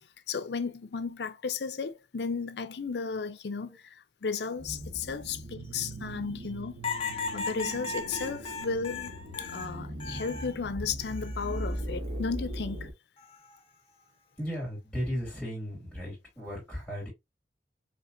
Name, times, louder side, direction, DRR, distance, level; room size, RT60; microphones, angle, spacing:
voice 1, 0.3-6.8 7.3-9.1 9.4-12.9, left 5 dB, 75° left, 0.6 m, -34 dB
sound 1, 4.6-12.9, right 1 dB, 80° right, 1.4 m, -39 dB
sound 2, 6.8-10.5 11.0-11.8 13.2-13.6, left 4 dB, 30° left, 0.8 m, -37 dB
voice 2, 14.4-17.1, equal, ahead, 2.8 m, -36 dB
5.3 x 3.3 x 2.6 m
head